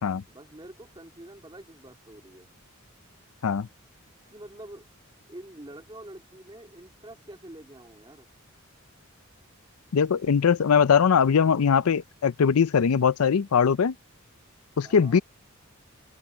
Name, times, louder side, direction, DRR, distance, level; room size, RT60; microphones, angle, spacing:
voice 1, 0.3-2.5 4.3-4.8 5.3-8.3 14.8-15.2, right 1 dB, 20° right, 2.8 m, -46 dB
voice 2, 9.9-13.9 14.8-15.2, left 6 dB, 90° left, 0.5 m, -21 dB
open air
head